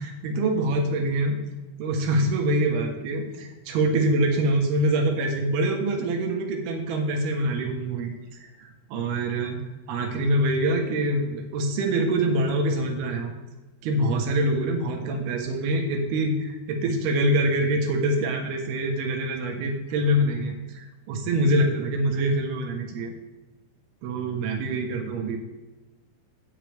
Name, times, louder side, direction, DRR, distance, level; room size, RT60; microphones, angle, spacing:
voice 1, 0.0-1.4 1.8-9.6 9.9-13.3 13.8-23.1 24.0-25.4, right 1 dB, 80° right, 3 dB, 3.1 m, -25 dB
17.0 x 6.2 x 3.4 m, 1.1 s
omnidirectional pair, 4.5 m